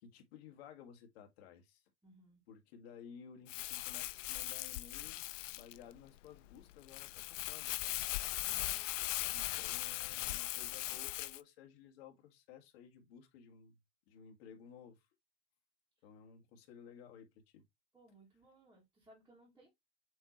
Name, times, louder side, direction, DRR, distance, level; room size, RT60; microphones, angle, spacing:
voice 1, 0.0-1.8 2.5-5.2 5.5-8.1 9.3-13.8 14.1-15.1 16.0-17.3 17.5-17.6, left 7 dB, 55° left, 2.1 m, -56 dB
voice 2, 2.0-2.4 8.3-9.6 16.0-16.1 17.9-19.7, right 2 dB, 5° right, 1.6 m, -64 dB
Crumpling crinkling, 3.5-11.4, left 18 dB, 90° left, 0.6 m, -39 dB
7.8 x 3.2 x 4.2 m
supercardioid pair, 180°, 36 cm